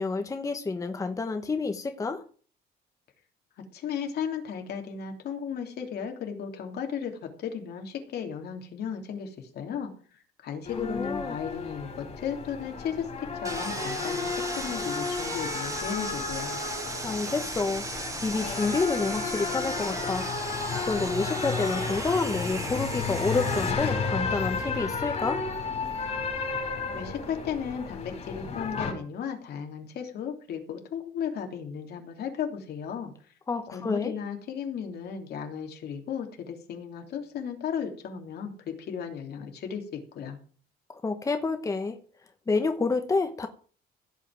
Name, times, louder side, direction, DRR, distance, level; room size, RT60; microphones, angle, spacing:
voice 1, 0.0-2.2 10.8-11.4 17.0-17.9 18.2-20.3 20.9-25.5 33.5-34.1 40.9-42.0 42.5-43.5, left 3 dB, 20° left, 7 dB, 1.1 m, -29 dB
voice 2, 3.7-16.6 26.9-33.1 33.7-40.4, left 7 dB, 65° left, 4 dB, 3.1 m, -35 dB
sound 1, 10.6-28.9, left 4 dB, 40° left, 4.9 m, -33 dB
Sawing, 13.4-23.7, right 2 dB, 20° right, 2.8 m, -36 dB
16.0 x 5.6 x 8.9 m, 0.42 s
cardioid pair, 160°, 18 cm